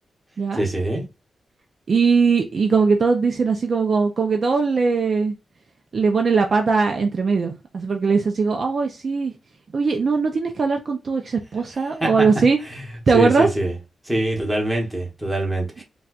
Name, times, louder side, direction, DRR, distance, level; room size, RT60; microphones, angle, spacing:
voice 1, 0.5-1.1 12.0-12.3 12.7-12.8 13.1-13.7 14.0-15.8, right 1 dB, 10° right, 1.0 m, -24 dB
voice 2, 1.9-5.3 5.9-9.3 9.7-12.6 13.1-13.5, right 4 dB, 45° right, 0.4 m, -20 dB
4.1 x 2.2 x 2.3 m
wide cardioid pair, 150°, 0 cm